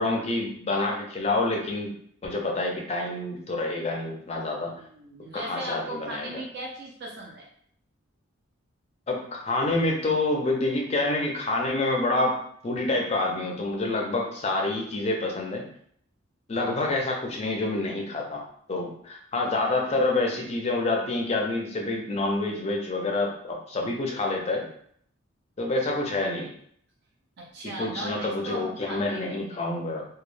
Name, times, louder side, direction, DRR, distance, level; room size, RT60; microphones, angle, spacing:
voice 1, 0.0-1.9 2.2-4.8 5.3-6.3 9.1-15.6 16.5-18.4 18.7-24.6 25.6-26.5 27.8-30.0, left 2 dB, 30° left, 0 dB, 0.4 m, -27 dB
voice 2, 4.7-7.5 27.4-29.3 29.5-29.6, right 2 dB, 50° right, -2 dB, 0.4 m, -38 dB
2.2 x 2.1 x 3.1 m, 0.64 s
head